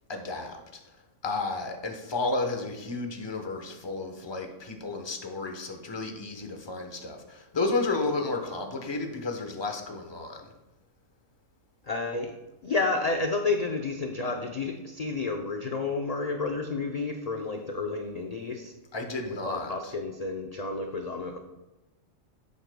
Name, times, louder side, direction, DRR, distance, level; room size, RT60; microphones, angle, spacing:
voice 1, 0.1-0.8 1.2-10.5 18.9-19.9, left 3 dB, 25° left, 4 dB, 0.9 m, -32 dB
voice 2, 11.9-12.3 12.6-18.7 19.4-21.4, left 3 dB, 45° left, 4 dB, 0.5 m, -30 dB
11.0 x 8.0 x 2.2 m, 1.1 s
omnidirectional pair, 1.3 m